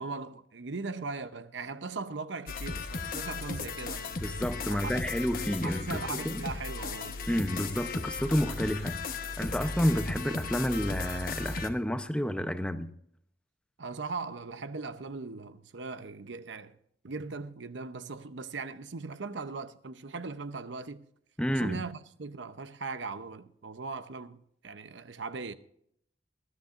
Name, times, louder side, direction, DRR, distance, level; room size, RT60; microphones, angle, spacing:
voice 1, 0.0-4.1 4.7-4.9 5.6-7.2 13.8-16.8 17.0-21.0 21.5-25.5, right 4 dB, 80° right, 0.8 m, -39 dB
sound 1, 2.5-11.7, left 4 dB, 50° left, 1.1 m, -36 dB
voice 2, 4.2-6.4 7.3-9.0 9.4-12.9 21.4-21.8, equal, 5° left, 0.7 m, -30 dB
20.0 x 13.0 x 2.6 m
head